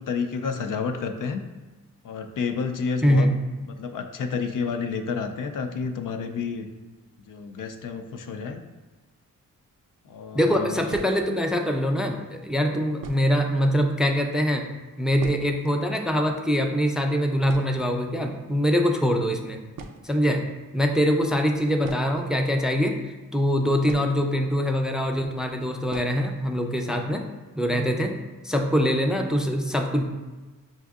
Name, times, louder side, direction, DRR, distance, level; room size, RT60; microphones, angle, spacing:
voice 1, 0.0-1.4 2.0-3.3 3.6-6.7 7.3-8.6 10.1-10.9 26.8-27.1, left 5 dB, 65° left, 7 dB, 0.5 m, -30 dB
sound 1, 9.9-10.0 10.9-11.5 12.4-12.5 13.0-13.5 13.8-13.9 14.1-14.3 14.7-15.8 16.1-16.2 16.4-16.7 17.0-17.1 17.5-18.4 19.3-19.4 19.7-20.3 21.8-22.9 23.8-24.7 24.9-25.0 25.9-26.3 26.7-26.8 27.1-27.2 27.6-28.0, right 4 dB, 75° right, 0.5 m, -41 dB
voice 2, 10.3-14.7 15.0-19.6 20.0-20.4 20.7-23.0 23.3-27.2 27.6-28.1 28.4-30.0, equal, ahead, 3 dB, 0.4 m, -23 dB
6.1 x 2.6 x 2.4 m, 1.2 s
cardioid pair, 70°, 34 cm